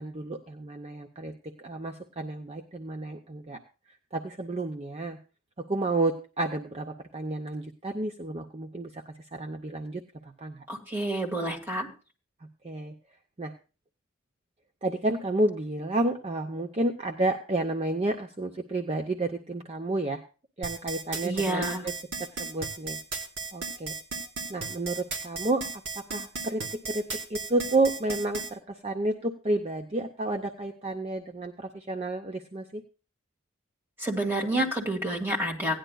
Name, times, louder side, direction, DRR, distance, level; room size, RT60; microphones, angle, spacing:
voice 1, 0.0-1.3 1.6-3.6 4.1-5.2 5.6-10.7 12.6-12.9 13.4-13.5 14.8-20.2 20.6-21.9 22.2-23.0 23.5-24.0 24.5-25.6 26.0-32.8, right 2 dB, 30° right, 4 dB, 0.6 m, -31 dB
voice 2, 10.7-11.9 21.2-21.9 34.0-35.8, right 1 dB, 10° right, -1 dB, 1.8 m, -29 dB
sound 1, 20.6-28.5, right 4 dB, 60° right, 2.0 m, -35 dB
17.0 x 10.0 x 2.3 m, 0.33 s
head